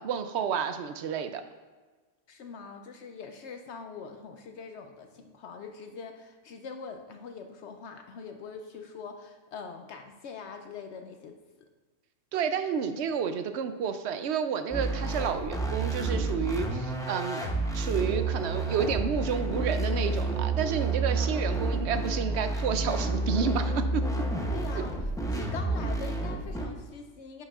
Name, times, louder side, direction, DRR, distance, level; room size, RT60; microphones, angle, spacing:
voice 1, 0.0-1.4 12.3-17.4 17.7-24.0 24.8-24.9, right 7 dB, 70° right, 9 dB, 0.8 m, -30 dB
voice 2, 2.3-11.4 24.1-24.2 24.5-24.9 25.3-27.4, left 5 dB, 70° left, 5 dB, 0.8 m, -43 dB
sound 1, 14.7-26.7, right 2 dB, 5° left, 0.4 m, -30 dB
10.5 x 6.3 x 2.4 m, 1.3 s
omnidirectional pair, 1.3 m